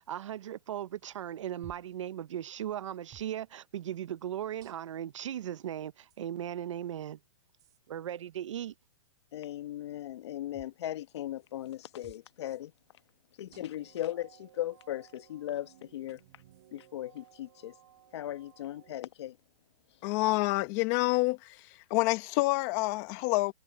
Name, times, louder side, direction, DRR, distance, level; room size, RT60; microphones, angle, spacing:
voice 1, 0.0-7.2 7.9-8.7, right 11 dB, 70° right, 1.1 m, -37 dB
sound 1, 1.6-2.0 3.1-3.4 4.6-5.1 6.1-6.2 7.6-7.8 10.5-10.8 12.0-12.3 13.5-13.9 15.0-15.1 16.5-16.7, right 13 dB, 20° right, 4.3 m, -56 dB
voice 2, 9.3-12.7 13.4-16.2 16.7-17.7 18.1-19.4, left 13 dB, 55° left, 1.3 m, -38 dB
sound 2, 13.5-19.0, right 14 dB, 50° right, 7.1 m, -60 dB
voice 3, 20.0-21.6 21.9-23.5, left 23 dB, 30° left, 1.4 m, -27 dB
hypercardioid pair, 160°, 16 cm